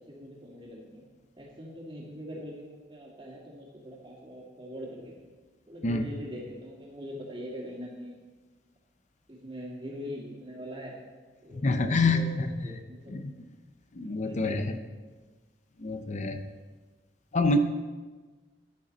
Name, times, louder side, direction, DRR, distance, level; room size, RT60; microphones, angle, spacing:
voice 1, 0.1-1.0 1.4-5.1 5.7-8.2 9.3-10.9 11.4-13.1 14.2-14.7, equal, 25° right, -8 dB, 2.4 m, -42 dB
voice 2, 11.6-12.5 13.1-13.3 13.9-14.8 15.8-16.4 17.3-17.6, left 3 dB, 40° left, 8 dB, 0.6 m, -26 dB
13.5 x 10.5 x 4.1 m, 1.3 s
head